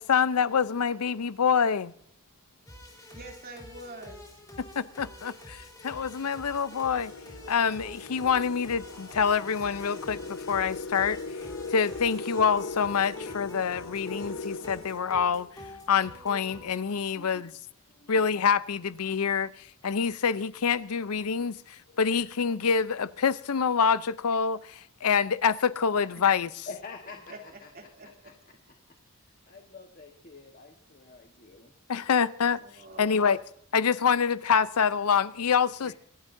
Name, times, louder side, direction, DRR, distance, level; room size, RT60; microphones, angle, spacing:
voice 1, 0.0-1.9 4.6-7.1 7.5-11.2 11.7-15.5 15.9-17.5 18.1-26.7 31.9-32.6 33.0-33.4 33.7-35.9, left 6 dB, 80° left, 0.6 m, -26 dB
sound 1, 2.7-16.8, left 1 dB, 15° left, 3.3 m, -47 dB
voice 2, 3.0-4.2 27.3-27.4 27.7-28.1 32.6-33.3, right 2 dB, 45° right, 2.9 m, -45 dB
sound 2, 4.4-4.6 5.5-5.6 6.0-15.8, left 3 dB, 60° left, 1.1 m, -40 dB
voice 3, 4.4-4.7 5.1-5.4 11.6-11.8 17.1-17.5 17.9-18.2 21.9-22.2 26.6-28.3 28.7-28.8 29.1-31.7 35.8-35.9, left 3 dB, 40° left, 1.3 m, -48 dB
26.5 x 12.0 x 2.7 m
head